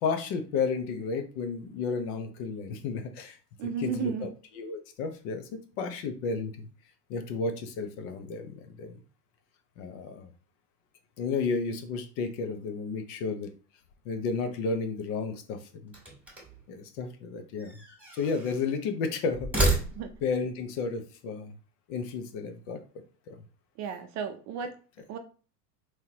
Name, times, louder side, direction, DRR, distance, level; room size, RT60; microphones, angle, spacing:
voice 1, 0.0-3.4 3.6-4.3 4.5-6.7 7.1-9.0 9.8-10.3 11.2-13.5 14.0-15.9 16.7-17.8 18.1-19.8 20.2-21.5 21.9-22.8 23.3-23.4, left 4 dB, 55° left, 7 dB, 0.8 m, -32 dB
voice 2, 3.6-4.3 20.0-20.1 23.8-24.7 25.1-25.2, right 6 dB, 35° right, 7 dB, 0.5 m, -33 dB
sound 1, 15.9-16.7 17.6-18.7 19.3-20.4, right 2 dB, 5° right, 1.7 m, -30 dB
3.5 x 3.0 x 2.9 m, 0.38 s
hypercardioid pair, 95°, 48 cm